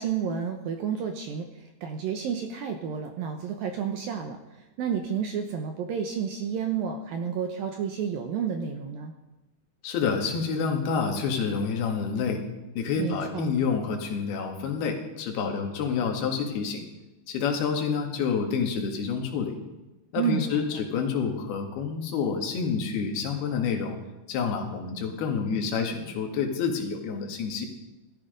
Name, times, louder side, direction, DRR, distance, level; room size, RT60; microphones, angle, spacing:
voice 1, 0.0-1.5 1.8-4.4 4.8-9.1 13.0-13.5 20.2-20.7, right 7 dB, 75° right, 4 dB, 2.2 m, -30 dB
voice 2, 9.8-12.4 12.8-16.9 17.3-19.6 20.1-24.0 24.3-27.7, left 6 dB, 65° left, 2 dB, 3.7 m, -28 dB
17.5 x 13.5 x 5.2 m, 1.0 s
omnidirectional pair, 5.2 m